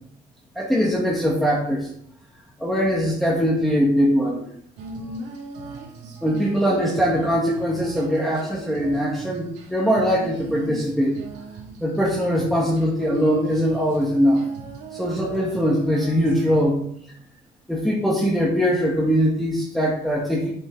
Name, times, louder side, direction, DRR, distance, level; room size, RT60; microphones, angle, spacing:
voice 1, 0.6-1.9 2.6-4.5 6.2-11.2 11.8-14.4 14.9-16.8 17.7-20.5, equal, ahead, -4 dB, 1.8 m, -21 dB
Female singing, 4.8-16.6, right 3 dB, 80° right, 2.7 m, -39 dB
7.9 x 7.6 x 4.0 m, 0.66 s
cardioid pair, 110°, 17 cm